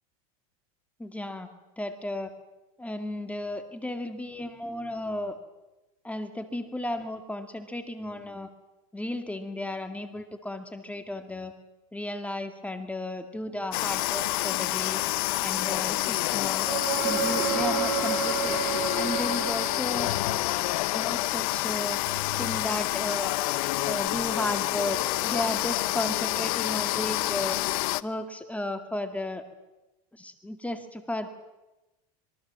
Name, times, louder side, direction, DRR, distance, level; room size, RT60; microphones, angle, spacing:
voice 1, 1.0-1.5 1.8-2.3 2.8-5.4 6.0-8.5 8.9-11.5 11.9-15.0 15.4-16.7 17.0-18.6 18.9-20.5 20.9-22.0 22.4-23.3 23.8-27.6 28.0-29.4 30.1-31.3, left 1 dB, 5° left, 7 dB, 2.1 m, -34 dB
sound 1, 13.7-28.0, left 18 dB, 70° left, 0.9 m, -28 dB
sound 2, 16.6-20.4 24.1-24.2, right 7 dB, 50° right, 5.0 m, -31 dB
26.0 x 23.0 x 7.4 m, 1.0 s
supercardioid pair, 110°, 19 cm